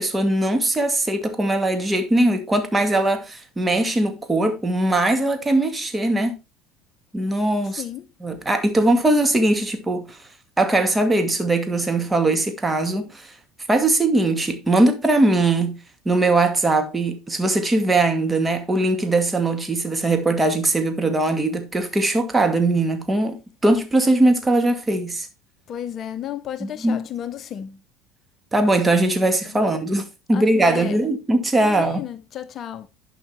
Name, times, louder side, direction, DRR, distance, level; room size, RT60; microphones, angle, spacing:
voice 1, 0.0-6.3 7.1-7.8 8.2-10.2 10.6-13.3 13.7-15.8 16.1-23.4 23.6-25.3 26.6-27.0 28.5-32.0, right 2 dB, 15° right, 2.2 m, -20 dB
voice 2, 25.7-27.8 29.4-29.7 30.3-31.0 31.6-32.9, left 10 dB, 45° left, 0.7 m, -33 dB
11.0 x 5.6 x 4.3 m
hypercardioid pair, 75°, 0 cm